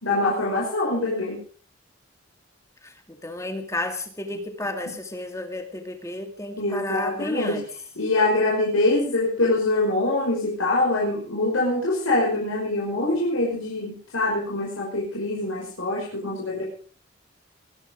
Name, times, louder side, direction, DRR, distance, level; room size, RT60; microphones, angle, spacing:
voice 1, 0.0-1.4 4.3-4.4 6.6-7.6 8.0-16.6, left 2 dB, 85° left, -4 dB, 5.6 m, -24 dB
voice 2, 2.8-7.7, left 1 dB, 15° left, 5 dB, 2.4 m, -32 dB
22.5 x 11.0 x 5.1 m, 0.42 s
head